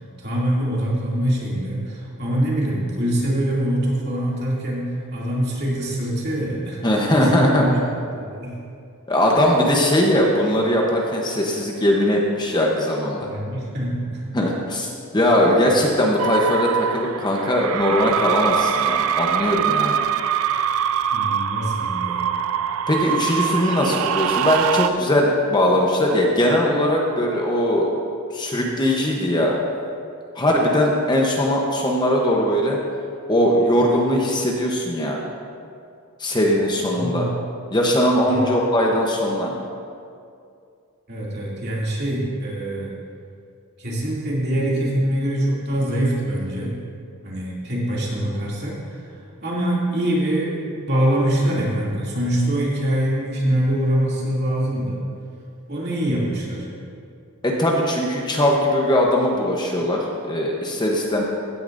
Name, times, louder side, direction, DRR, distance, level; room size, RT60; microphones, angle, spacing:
voice 1, 0.2-7.8 8.1-8.6 13.2-14.4 21.1-22.4 36.9-37.3 38.3-38.4 41.1-42.9 43.8-46.8 47.2-48.8 49.4-55.1 55.7-56.7, right 1 dB, 50° right, -6 dB, 2.5 m, -24 dB
voice 2, 6.8-7.7 9.1-13.3 14.3-20.0 22.9-27.9 28.3-29.5 30.4-32.8 33.3-35.2 36.2-37.3 37.7-39.5 57.4-61.2, left 1 dB, 20° left, -1 dB, 0.8 m, -20 dB
sound 1, 16.2-24.9, right 8 dB, 65° right, 0.3 m, -23 dB
16.0 x 9.8 x 2.6 m, 2.4 s
head